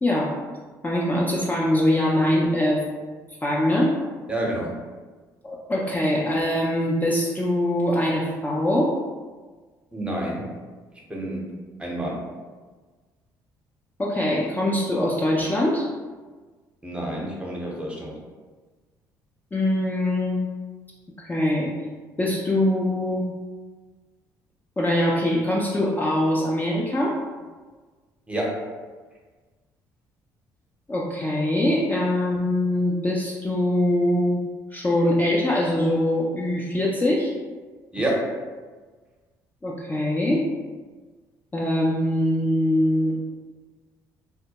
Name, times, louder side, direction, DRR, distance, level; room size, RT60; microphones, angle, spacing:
voice 1, 0.0-0.3 0.8-2.8 3.4-3.9 5.4-9.0 14.0-15.8 19.5-20.4 21.2-21.7 22.2-23.3 24.8-27.2 30.9-34.4 34.7-37.3 39.6-40.5 41.5-43.2, left 1 dB, 20° left, -4 dB, 0.4 m, -23 dB
voice 2, 4.3-4.7 9.9-10.5 11.1-11.5 11.8-12.2 16.8-18.2 28.3-28.7 37.9-38.4, right 1 dB, 10° right, -2 dB, 0.7 m, -28 dB
2.2 x 2.0 x 2.8 m, 1.4 s
supercardioid pair, 65°, 9 cm